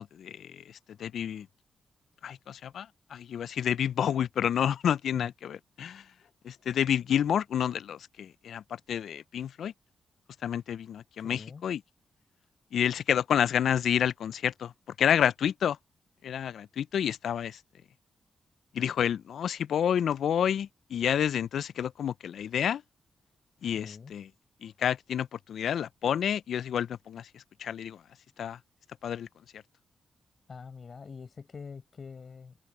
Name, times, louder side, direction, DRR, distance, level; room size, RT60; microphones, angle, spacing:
voice 1, 0.0-1.5 2.2-6.0 6.4-9.7 10.4-11.8 12.7-14.7 15.0-15.8 16.2-17.6 18.7-22.8 23.6-24.2 24.6-28.0 28.4-28.6 29.0-29.3 29.5-29.6, left 9 dB, 80° left, 0.3 m, -29 dB
voice 2, 11.2-11.6 23.8-24.1 30.5-32.6, left 5 dB, 55° left, 4.6 m, -44 dB
open air
cardioid pair, 55°, 0 cm